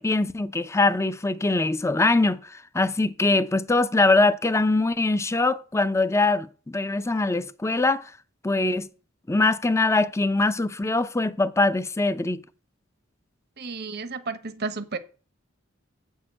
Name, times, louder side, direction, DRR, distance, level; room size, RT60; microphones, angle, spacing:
voice 1, 0.0-8.1 8.4-8.9 9.3-12.4, left 2 dB, 15° left, 0.5 m, -23 dB
voice 2, 13.6-15.0, right 4 dB, 55° right, 1.0 m, -32 dB
7.9 x 6.5 x 7.4 m
head